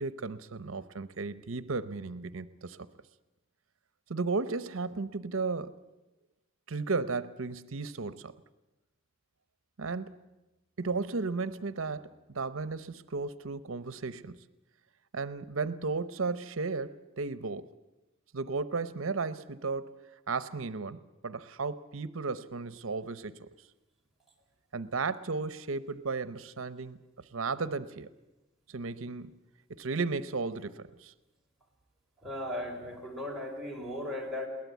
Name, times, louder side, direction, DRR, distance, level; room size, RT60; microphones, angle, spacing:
voice 1, 0.0-2.8 4.1-5.7 6.7-8.3 9.8-10.2 10.8-14.4 15.1-17.7 18.3-20.0 20.3-23.5 24.7-27.0 27.3-28.1 28.7-29.4 29.7-31.1, right 4 dB, 80° right, 15 dB, 0.8 m, -34 dB
voice 2, 32.2-34.5, left 1 dB, ahead, -2 dB, 4.1 m, -37 dB
22.0 x 18.0 x 8.3 m, 1.0 s
head